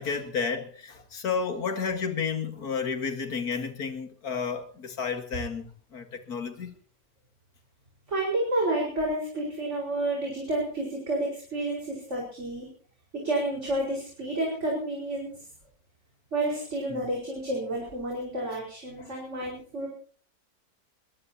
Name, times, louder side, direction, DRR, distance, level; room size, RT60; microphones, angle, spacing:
voice 1, 0.0-6.7 16.9-17.1 19.0-19.1, left 5 dB, 85° left, 2.3 m, -32 dB
voice 2, 8.1-12.7 13.1-15.3 16.3-19.9, right 1 dB, 50° right, 5.4 m, -30 dB
22.5 x 21.5 x 2.9 m
omnidirectional pair, 1.6 m